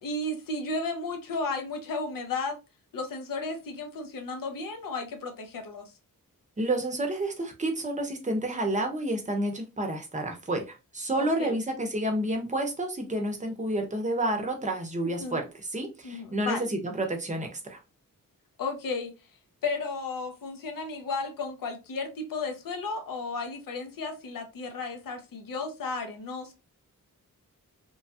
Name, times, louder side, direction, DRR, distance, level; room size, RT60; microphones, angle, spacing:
voice 1, 0.0-2.6 2.9-5.9 11.2-11.5 15.0-15.4 16.0-16.7 18.6-19.1 19.6-26.5, left 3 dB, 80° left, 0.7 m, -34 dB
voice 2, 6.6-17.8, right 1 dB, 20° right, 0.7 m, -30 dB
3.0 x 2.2 x 2.7 m
wide cardioid pair, 130°, 33 cm